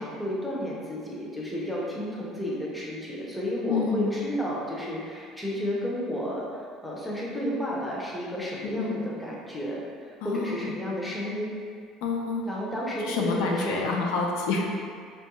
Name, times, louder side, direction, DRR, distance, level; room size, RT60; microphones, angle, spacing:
voice 1, 0.0-11.5 12.4-13.8, equal, 5° left, -5 dB, 0.5 m, -32 dB
voice 2, 3.7-4.2 8.6-8.9 10.2-10.7 12.0-12.4 13.0-14.7, left 4 dB, 85° left, 0 dB, 0.4 m, -28 dB
2.9 x 2.2 x 2.9 m, 2.1 s
cardioid pair, 155°, 0 cm